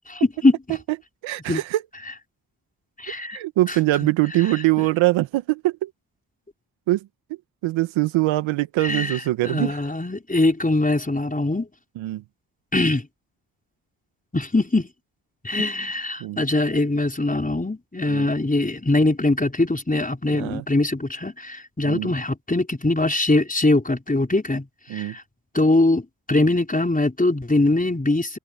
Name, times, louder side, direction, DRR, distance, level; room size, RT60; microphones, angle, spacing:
voice 1, 0.1-0.8 1.5-1.6 3.0-3.4 3.7-4.1 4.8-4.9 8.8-11.7 12.7-13.1 14.3-14.9 15.4-24.7 24.9-25.2 25.5-26.0 26.3-28.4, left 2 dB, 20° left, 4.9 m, -22 dB
voice 2, 1.2-1.8 3.3-5.9 6.9-7.0 7.6-9.8 12.0-12.2 16.2-16.4 18.1-18.3 20.3-20.6 21.8-22.1 24.9-25.1, right 17 dB, 80° right, 1.6 m, -22 dB
open air
hypercardioid pair, 40°, 46 cm